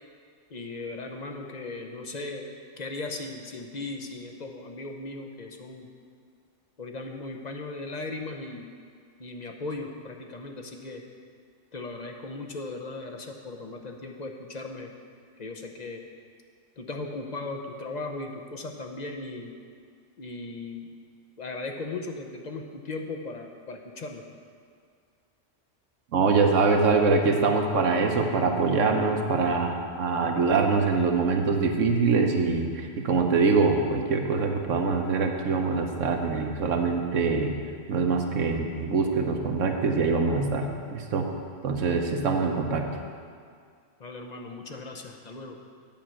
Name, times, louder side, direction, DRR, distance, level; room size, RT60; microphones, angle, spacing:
voice 1, 0.5-2.5 2.8-5.9 6.8-8.7 9.2-11.0 11.7-14.9 15.4-16.1 16.8-19.6 20.2-20.9 21.4-24.2 44.0-45.6, left 3 dB, 40° left, 3 dB, 0.8 m, -37 dB
voice 2, 26.1-37.6 37.9-41.3 41.6-42.9, right 4 dB, 85° right, 3 dB, 1.3 m, -24 dB
9.0 x 5.7 x 7.5 m, 2.1 s
omnidirectional pair, 1.2 m